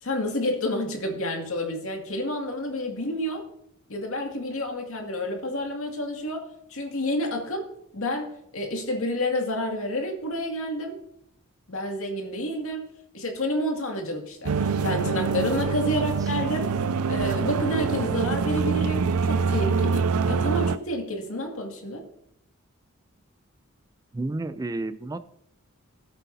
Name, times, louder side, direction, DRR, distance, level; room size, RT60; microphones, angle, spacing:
voice 1, 0.0-3.5 3.9-7.7 7.9-11.0 11.7-12.8 13.1-16.7 17.1-22.0, left 1 dB, 65° left, 2 dB, 2.2 m, -29 dB
sound 1, 14.4-20.8, right 5 dB, 80° right, 0.5 m, -25 dB
voice 2, 15.9-16.3 24.1-25.2, right 2 dB, 15° right, 12 dB, 0.3 m, -32 dB
17.0 x 8.1 x 2.7 m, 0.75 s
head